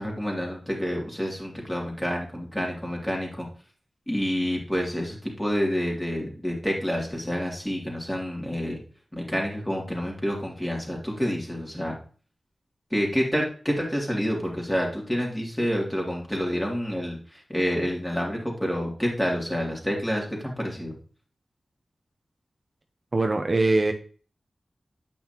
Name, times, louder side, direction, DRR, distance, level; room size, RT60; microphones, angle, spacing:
voice 1, 0.0-3.5 4.1-8.8 9.1-12.0 12.9-20.9, equal, 15° left, -1 dB, 2.9 m, -28 dB
voice 2, 23.1-23.9, right 2 dB, 45° right, 5 dB, 0.8 m, -22 dB
8.6 x 5.6 x 3.0 m, 0.41 s
cardioid pair, 50°, 0 cm